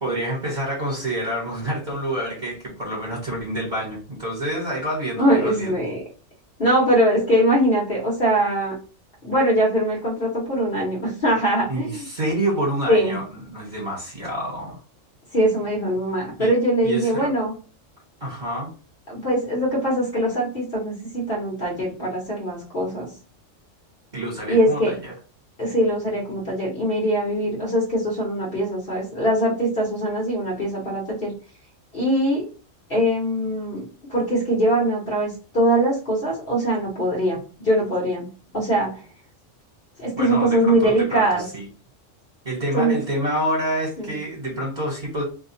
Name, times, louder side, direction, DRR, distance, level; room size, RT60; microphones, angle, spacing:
voice 1, 0.0-5.7 11.7-14.8 16.4-16.5 16.8-17.3 18.2-18.7 24.1-25.1 40.2-41.6 42.4-45.2, right 1 dB, 40° right, -4 dB, 1.4 m, -28 dB
voice 2, 5.2-6.0 6.6-8.8 9.2-12.0 12.9-13.2 15.3-17.5 19.1-23.1 24.5-24.9 25.6-31.3 31.9-32.5 32.9-33.8 34.1-38.3 38.5-39.0 40.0-41.5 42.7-43.0 44.0-44.2, right 1 dB, 45° left, -5 dB, 1.2 m, -22 dB
2.8 x 2.3 x 4.1 m, 0.36 s
omnidirectional pair, 1.3 m